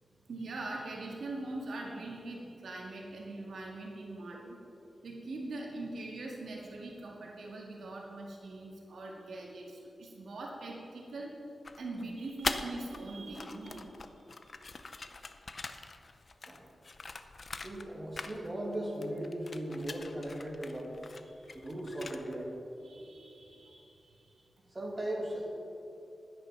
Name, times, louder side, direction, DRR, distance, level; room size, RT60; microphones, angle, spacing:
voice 1, 0.3-4.6 5.0-11.3 11.8-14.1 14.4-14.6 21.2-21.6 22.8-24.5, right 2 dB, 80° right, -1 dB, 2.0 m, -42 dB
sound 1, 11.7-13.0 13.3-17.9 18.1-18.8 19.0-22.4, left 3 dB, 40° left, 0.7 m, -42 dB
voice 2, 17.6-20.9 21.5-22.5 24.7-25.5, right 1 dB, 20° right, -3 dB, 2.6 m, -37 dB
12.0 x 9.9 x 5.9 m, 2.9 s
wide cardioid pair, 120°, 0 cm